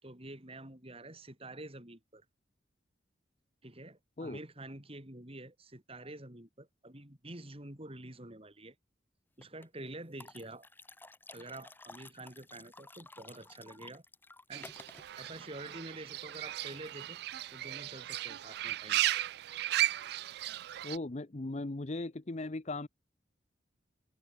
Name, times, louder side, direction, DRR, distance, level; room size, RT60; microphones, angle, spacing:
voice 1, 0.0-2.2 3.6-8.8 9.4-10.7 11.3-14.0 14.5-14.7 15.2-17.2 17.5-19.1, right 2 dB, 30° right, 4.1 m, -47 dB
sound 1, 9.4-9.7 10.2-15.1, left 2 dB, 10° left, 2.3 m, -53 dB
Fowl / Bird, 14.5-21.0, right 14 dB, 60° right, 0.3 m, -35 dB
voice 2, 20.8-22.9, left 2 dB, 40° left, 0.8 m, -38 dB
head